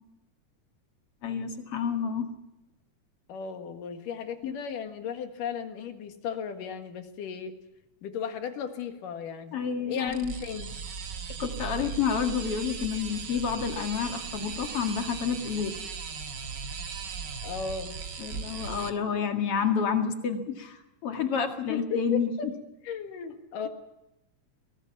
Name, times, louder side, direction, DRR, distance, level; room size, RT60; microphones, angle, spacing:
voice 1, 1.2-2.3 4.4-4.5 9.5-10.4 11.4-15.8 18.2-22.3, left 6 dB, 50° left, 5 dB, 2.7 m, -29 dB
voice 2, 3.3-7.5 8.0-9.6 9.9-10.7 17.4-18.0 21.7-22.5 22.8-23.7, left 7 dB, 85° left, 6 dB, 3.4 m, -35 dB
sound 1, 10.1-18.9, right 5 dB, 50° right, 1.4 m, -38 dB
23.0 x 19.0 x 7.3 m, 0.92 s
omnidirectional pair, 3.7 m